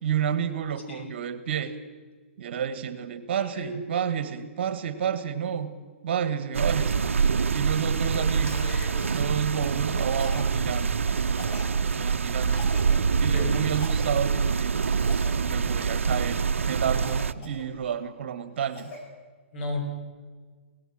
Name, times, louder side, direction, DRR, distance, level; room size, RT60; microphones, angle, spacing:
voice 1, 0.0-1.8 2.4-5.7 6.0-6.9 7.5-8.8 9.1-10.9 11.8-12.6 13.2-14.7 15.4-18.9, right 8 dB, 55° right, 12 dB, 1.6 m, -30 dB
voice 2, 3.3-3.8 7.9-8.3 8.6-8.9 12.4-12.6 12.9-13.5 19.5-19.8, left 3 dB, 60° left, 2 dB, 6.3 m, -36 dB
sound 1, 6.5-17.3, right 5 dB, 75° right, 0.7 m, -25 dB
Cough, 8.4-8.7 9.0-9.2 10.1-10.5 11.2-11.7 12.4-12.9 13.6-14.1 14.8-15.3 15.8-16.1 17.0-18.0 18.4-19.0, left 3 dB, 35° left, 6.2 m, -44 dB
23.5 x 18.5 x 6.4 m, 1.5 s
hypercardioid pair, 125°, 7 cm